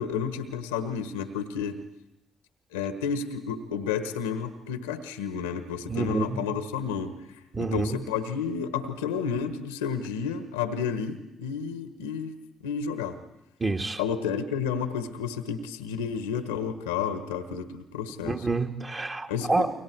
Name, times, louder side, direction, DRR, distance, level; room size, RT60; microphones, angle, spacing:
voice 1, 0.0-1.8 2.7-7.1 7.6-12.3 12.6-13.2 14.0-18.5 19.3-19.7, left 6 dB, 85° left, 11 dB, 1.3 m, -31 dB
voice 2, 5.9-6.4 7.5-8.0 13.6-14.0 18.2-19.7, right 3 dB, 30° right, 4 dB, 2.0 m, -28 dB
29.5 x 23.0 x 4.7 m, 0.89 s
hypercardioid pair, 45°, 0 cm